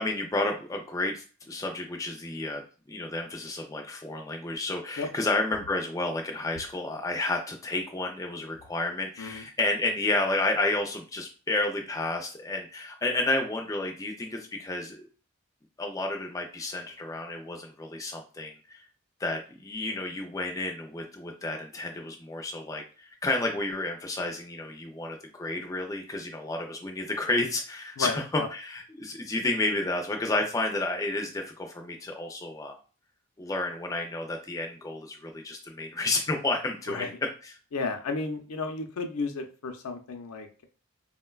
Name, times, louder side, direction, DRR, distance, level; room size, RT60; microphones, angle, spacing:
voice 1, 0.0-15.1 15.8-18.9 19.2-32.7 33.4-37.1 37.4-37.5, left 2 dB, 15° left, 2 dB, 0.3 m, -31 dB
voice 2, 28.0-28.5 36.9-37.1 37.7-40.6, left 4 dB, 85° left, 6 dB, 0.5 m, -33 dB
3.7 x 2.2 x 2.3 m, 0.37 s
head